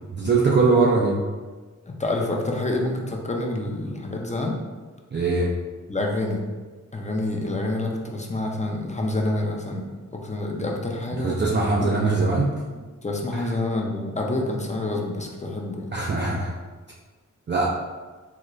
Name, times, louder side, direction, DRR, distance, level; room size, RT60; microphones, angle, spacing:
voice 1, 0.2-1.2 5.1-5.5 11.1-12.5 13.4-13.5 15.9-16.5 17.5-17.7, right 3 dB, 35° right, -3 dB, 0.4 m, -21 dB
voice 2, 1.9-4.6 5.9-6.4 6.9-11.4 11.8-11.9 13.0-15.9, left 2 dB, 20° left, 0 dB, 0.5 m, -27 dB
3.8 x 2.2 x 3.0 m, 1.3 s
cardioid pair, 70°, 32 cm